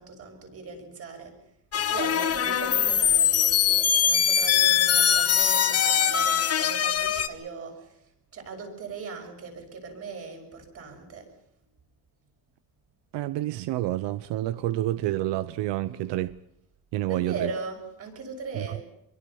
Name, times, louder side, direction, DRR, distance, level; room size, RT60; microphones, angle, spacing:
voice 1, 0.0-1.4 1.9-7.9 8.3-11.3 17.1-18.8, right 4 dB, 35° right, 6.1 m, -38 dB
sound 1, 1.7-7.3, left 9 dB, 35° left, 1.3 m, -22 dB
voice 2, 13.1-16.4 16.9-17.5 18.5-18.8, right 14 dB, 90° right, 0.9 m, -28 dB
27.0 x 23.0 x 5.6 m
cardioid pair, 170°, 41 cm